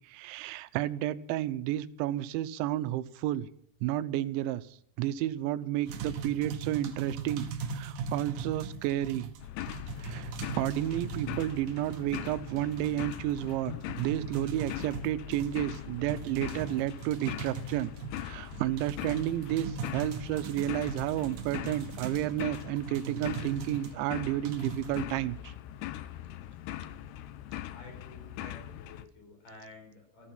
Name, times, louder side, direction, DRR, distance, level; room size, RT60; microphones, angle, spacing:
voice 1, 0.1-3.5 3.8-4.6 5.0-9.3 10.0-17.9 18.2-25.5 28.4-28.5, right 13 dB, 85° right, 14 dB, 3.0 m, -31 dB
sound 1, 5.9-24.0 24.5-25.0, right 5 dB, 60° right, 2.2 m, -40 dB
sound 2, 9.4-29.1, left 13 dB, 75° left, 2.6 m, -41 dB
voice 2, 27.7-30.3, left 2 dB, 45° left, 3 dB, 6.1 m, -51 dB
14.5 x 14.5 x 6.0 m, 0.62 s
omnidirectional pair, 5.3 m